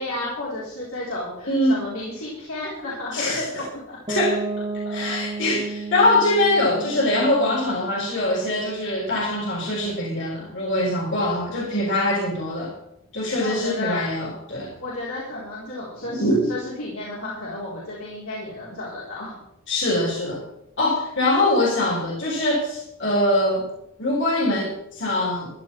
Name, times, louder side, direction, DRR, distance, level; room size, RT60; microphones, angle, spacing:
voice 1, 0.0-3.5 3.9-4.0 13.4-14.1 14.8-19.4, left 2 dB, 70° left, -7 dB, 3.8 m, -32 dB
voice 2, 1.5-1.9 3.1-3.4 4.1-4.4 4.9-12.7 13.1-14.7 16.2-16.5 19.7-20.4 20.8-23.7 24.0-25.5, left 1 dB, 55° left, -2 dB, 3.5 m, -23 dB
Piano, 4.1-9.8, right 3 dB, 20° right, 1.7 m, -33 dB
14.5 x 11.0 x 4.6 m, 0.82 s
head